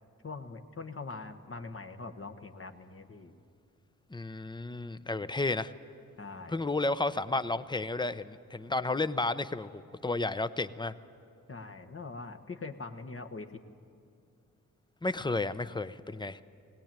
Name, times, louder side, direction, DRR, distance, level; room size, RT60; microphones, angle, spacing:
voice 1, 0.2-3.4 6.2-6.6 11.5-13.6, left 3 dB, 40° left, 6 dB, 1.3 m, -43 dB
voice 2, 4.1-5.7 6.5-10.9 15.0-16.4, left 2 dB, 15° left, 13 dB, 0.7 m, -32 dB
21.0 x 18.0 x 9.0 m, 2.5 s
cardioid pair, 65°, 33 cm